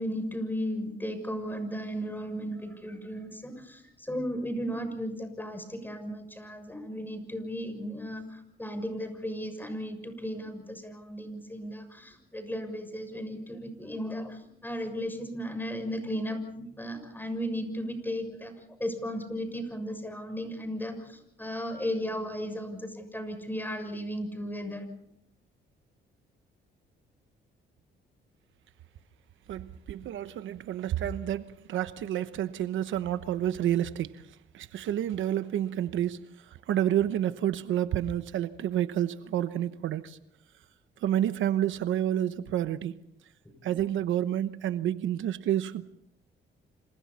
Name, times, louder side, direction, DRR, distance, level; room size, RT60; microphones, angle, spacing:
voice 1, 0.0-18.5 18.8-24.9 43.7-43.8, equal, 10° left, 6.7 m, -35 dB
voice 2, 29.5-31.4 31.7-34.2 34.5-36.2 36.7-40.2 41.0-43.0 43.6-45.9, right 11 dB, 75° right, 1.0 m, -29 dB
28.0 x 26.5 x 4.2 m
cardioid pair, 90°, 20 cm